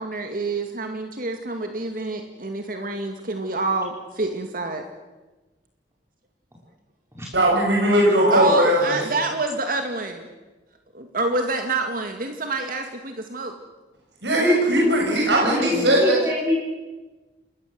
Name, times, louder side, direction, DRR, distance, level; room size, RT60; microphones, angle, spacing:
voice 1, 0.0-4.9 8.3-10.3 10.9-13.5, right 3 dB, 55° right, 5 dB, 2.2 m, -27 dB
voice 2, 7.3-9.0 14.2-16.2, equal, 80° right, -2 dB, 7.4 m, -19 dB
voice 3, 15.4-16.6, left 1 dB, 15° right, -3 dB, 4.8 m, -25 dB
29.0 x 21.0 x 7.8 m, 1.2 s
head